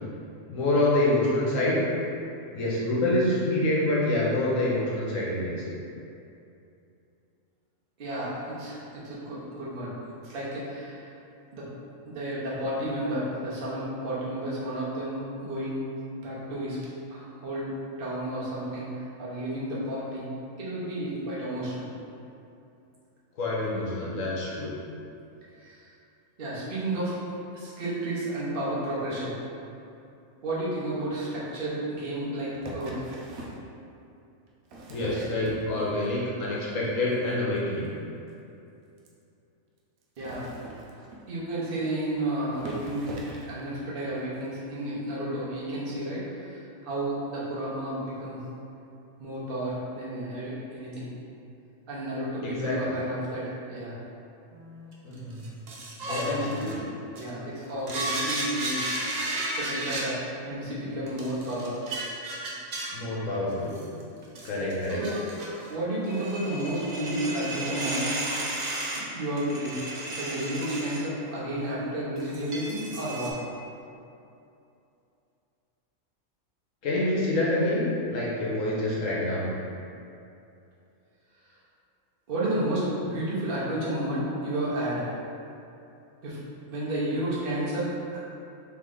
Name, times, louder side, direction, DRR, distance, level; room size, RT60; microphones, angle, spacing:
voice 1, 0.5-1.8 2.5-5.7 23.4-24.7 34.9-37.9 52.4-53.0 55.0-55.4 56.0-56.7 62.9-63.8 64.4-65.0 76.8-79.5, left 1 dB, 70° left, -6 dB, 1.1 m, -27 dB
voice 2, 8.0-9.9 10.2-11.1 11.5-11.7 12.1-15.8 16.2-20.3 20.6-21.9 25.6-25.9 26.4-27.2 27.5-29.3 30.4-33.1 40.2-40.5 41.3-43.2 43.5-48.4 49.2-51.1 51.9-54.0 56.1-56.7 57.1-58.9 59.3-61.8 64.9-65.2 65.7-68.1 68.9-69.8 70.1-73.4 82.3-85.1 86.2-86.4 86.7-88.2, right 1 dB, 45° right, -7 dB, 1.0 m, -32 dB
sound 1, 32.5-33.6 34.5-36.0 36.4-36.9 37.1-37.3 37.6-37.7 37.8-37.9 38.3-38.4 39.0-39.1 40.0-41.4 42.1-42.2 42.5-43.6 44.4-44.5, right 1 dB, 90° right, 1.0 m, -41 dB
sound 2, 54.5-57.3 57.9-60.1 61.1-63.0 63.7-65.7 65.9-69.0 69.4-71.0 71.6-71.8 72.2-73.3, right 2 dB, 60° right, 0.4 m, -34 dB
3.2 x 3.2 x 3.8 m, 2.7 s
omnidirectional pair, 1.4 m